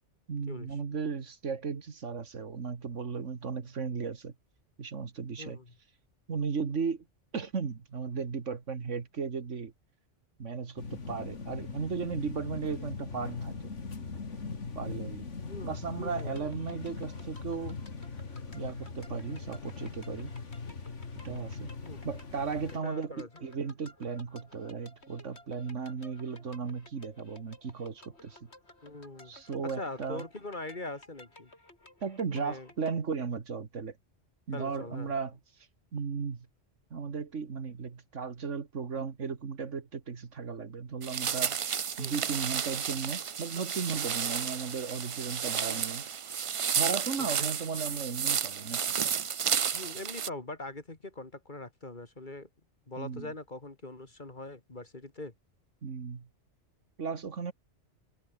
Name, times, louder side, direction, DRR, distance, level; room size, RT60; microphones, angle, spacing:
voice 1, 0.3-4.3 4.8-5.6 6.3-7.1 7.3-9.7 10.4-13.7 14.8-15.3 15.6-17.8 18.5-20.3 21.2-21.7 22.0-28.5 29.3-30.2 32.0-34.0 34.5-35.4 35.9-36.5 36.9-41.6 42.0-46.0 46.8-48.8 53.0-53.3 55.8-56.3 57.0-57.5, right 5 dB, 85° right, 2.1 m, -36 dB
voice 2, 5.4-5.7 15.5-16.5 21.8-22.0 22.8-23.3 28.8-29.3 29.6-31.5 32.2-32.7 34.5-35.1 42.0-42.1 47.2-47.5 49.7-52.5 52.9-55.3, left 2 dB, 40° left, 2.9 m, -42 dB
sound 1, 10.8-22.8, left 4 dB, 80° left, 2.6 m, -40 dB
sound 2, 16.1-33.0, left 2 dB, 60° left, 5.5 m, -56 dB
sound 3, 41.0-50.3, right 7 dB, 55° right, 0.3 m, -32 dB
omnidirectional pair, 1.2 m